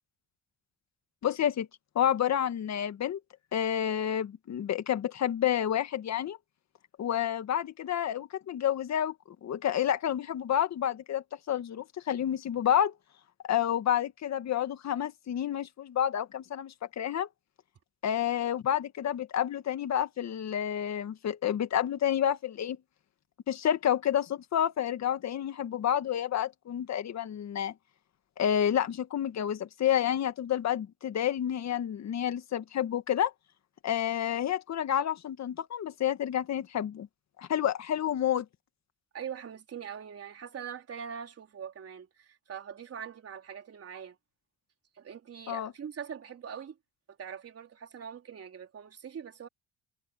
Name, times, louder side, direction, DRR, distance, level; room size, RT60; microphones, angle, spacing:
voice 1, 1.2-1.7 1.9-3.2 3.5-6.4 7.0-9.1 9.4-12.9 13.5-17.3 18.0-22.8 23.5-27.7 28.4-33.3 33.8-37.1 37.4-38.4 45.5-45.7, left 10 dB, 65° left, 1.9 m, -29 dB
voice 2, 39.1-44.2 45.0-46.8 47.1-49.5, right 8 dB, 50° right, 3.9 m, -42 dB
cardioid pair, 90°, 30 cm